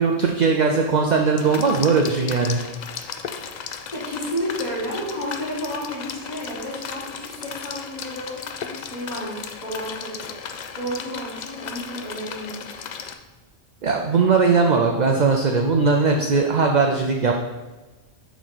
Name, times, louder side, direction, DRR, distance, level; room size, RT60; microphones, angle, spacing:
voice 1, 0.0-2.6 13.8-17.3, right 4 dB, 55° right, 2 dB, 0.5 m, -19 dB
sound 1, 1.4-13.2, left 6 dB, 75° left, 0.4 m, -35 dB
voice 2, 3.9-10.3 10.8-12.9, equal, 35° left, -6 dB, 2.0 m, -31 dB
6.2 x 4.6 x 4.0 m, 1.2 s
omnidirectional pair, 1.3 m